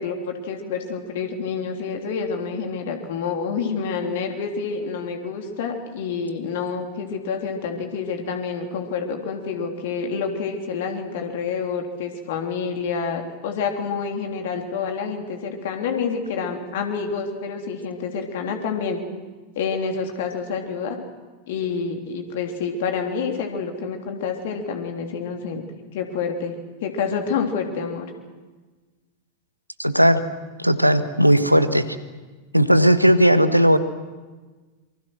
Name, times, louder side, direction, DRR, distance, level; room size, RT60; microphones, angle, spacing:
voice 1, 0.0-19.0 19.5-21.0 21.5-25.6 25.9-26.5 26.8-28.1, left 5 dB, 55° left, 3 dB, 3.3 m, -28 dB
voice 2, 29.8-30.2 30.6-31.8 32.5-33.8, equal, 90° right, 11 dB, 1.3 m, -16 dB
27.0 x 24.5 x 6.3 m, 1.3 s
figure-of-eight pair, 90°, 0 cm